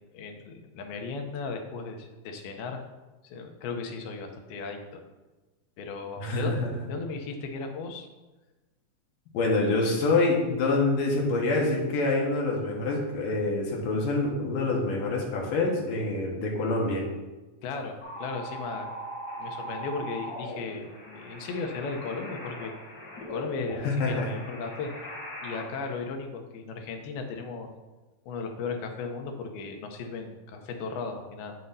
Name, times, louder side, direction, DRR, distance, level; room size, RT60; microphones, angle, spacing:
voice 1, 0.1-2.8 3.2-5.0 5.8-6.6 6.9-8.1 17.6-18.9 19.4-22.7 23.3-24.9 25.4-27.7 28.3-31.6, left 4 dB, 90° left, 4 dB, 2.7 m, -36 dB
voice 2, 6.2-6.6 9.3-17.1 23.8-24.3, left 2 dB, 70° left, -1 dB, 2.7 m, -26 dB
sound 1, 18.0-26.0, equal, 50° left, 1.2 m, -40 dB
8.5 x 7.7 x 2.7 m, 1.2 s
omnidirectional pair, 4.2 m